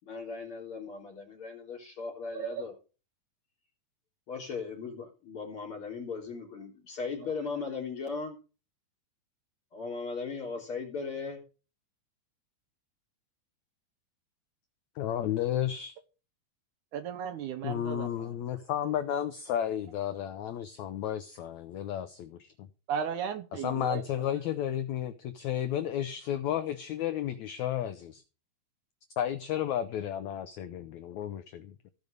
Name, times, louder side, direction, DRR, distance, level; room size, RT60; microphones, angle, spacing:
voice 1, 0.0-2.7 4.3-8.4 9.7-11.4, left 4 dB, 40° left, 4.3 m, -37 dB
voice 2, 15.0-15.9 17.6-22.4 23.5-28.2 29.2-31.9, left 10 dB, 75° left, 1.7 m, -32 dB
voice 3, 16.9-18.1 22.9-24.0, right 8 dB, 70° right, 2.1 m, -35 dB
16.0 x 5.3 x 6.6 m
omnidirectional pair, 4.1 m